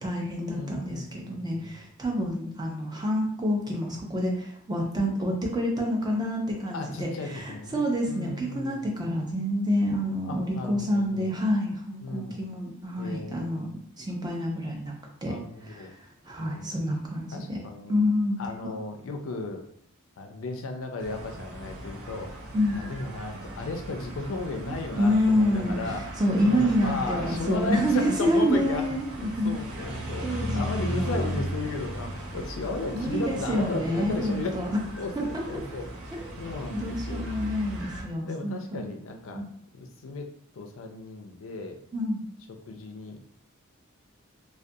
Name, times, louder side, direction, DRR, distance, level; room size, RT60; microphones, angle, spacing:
voice 1, 0.0-13.7 14.0-14.9 15.2-15.3 15.6-16.0 16.2-17.6 17.9-18.4 22.5-22.8 25.0-29.5 30.2-31.3 32.9-34.8 35.2-35.6 36.1-36.3 36.7-38.8 39.3-39.4 41.9-42.2, equal, 20° right, 0 dB, 0.4 m, -28 dB
voice 2, 0.5-1.7 6.7-9.0 10.2-11.4 12.0-12.4 13.0-13.7 15.2-15.9 16.4-16.7 17.3-18.0 18.4-19.6 20.2-22.3 22.7-29.0 29.4-34.6 35.0-36.0 36.4-37.9 38.3-39.4 39.7-40.3 40.5-41.8 42.7-43.3, left 3 dB, 65° left, 4 dB, 0.4 m, -35 dB
sound 1, 21.0-38.0, right 1 dB, 65° right, 0.7 m, -37 dB
2.3 x 2.2 x 2.6 m, 0.69 s
head